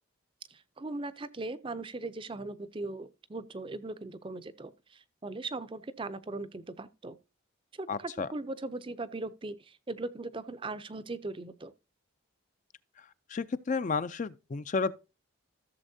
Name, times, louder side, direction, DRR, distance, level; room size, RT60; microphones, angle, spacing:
voice 1, 0.5-7.2 7.8-11.7, right 2 dB, 25° right, 0.5 m, -39 dB
voice 2, 7.9-8.3 13.3-14.9, left 4 dB, 35° left, 0.4 m, -31 dB
14.5 x 7.2 x 2.7 m
head